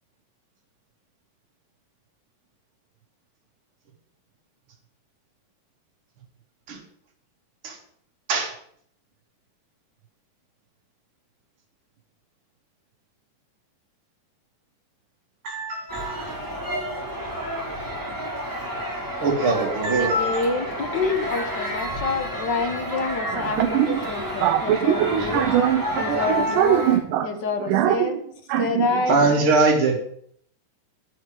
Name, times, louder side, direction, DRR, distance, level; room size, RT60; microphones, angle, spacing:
voice 1, 15.4-16.2 19.2-20.4 29.1-29.9, right 3 dB, 40° right, -1 dB, 3.2 m, -22 dB
sound 1, 15.9-27.0, equal, 5° right, 3.0 m, -30 dB
voice 2, 19.9-25.4 26.0-26.8 27.2-28.2 28.6-29.2, left 4 dB, 60° left, 6 dB, 1.1 m, -27 dB
voice 3, 23.3-24.1 24.4-27.3 27.6-28.2 28.5-29.3, right 11 dB, 80° right, 6 dB, 2.4 m, -22 dB
9.8 x 6.9 x 9.0 m, 0.63 s
omnidirectional pair, 3.8 m